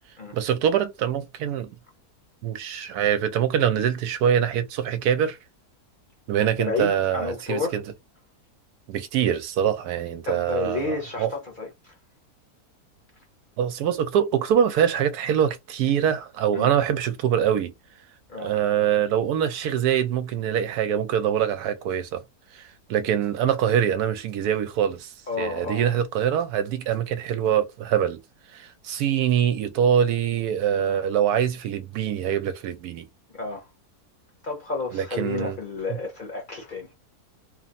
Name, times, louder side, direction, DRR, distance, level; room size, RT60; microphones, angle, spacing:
voice 1, 0.3-1.7 2.4-5.4 6.3-7.8 8.9-11.3 13.6-17.7 18.4-22.2 22.5-28.2 28.5-33.1 34.9-35.6 35.9-36.0, right 9 dB, 85° right, 1.1 m, -24 dB
voice 2, 6.5-7.8 10.2-11.9 16.5-16.7 18.3-18.5 25.3-25.8 33.3-33.7 34.4-36.9, left 3 dB, 40° left, 0.8 m, -31 dB
3.1 x 2.0 x 2.5 m
omnidirectional pair, 1.7 m